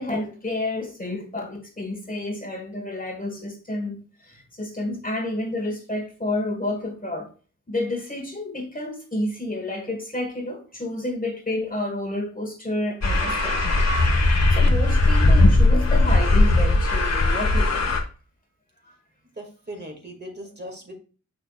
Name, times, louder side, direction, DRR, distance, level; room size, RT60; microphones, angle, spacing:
voice 1, 0.0-7.3 7.7-13.9 14.2-18.0 18.9-19.0, left 1 dB, 25° left, 1.5 m, -30 dB
sound 1, 13.0-18.0, left 2 dB, 55° left, 1.4 m, -18 dB
voice 2, 19.4-21.0, equal, 30° right, 2.2 m, -38 dB
7.4 x 6.5 x 2.4 m
wide cardioid pair, 85°, 33 cm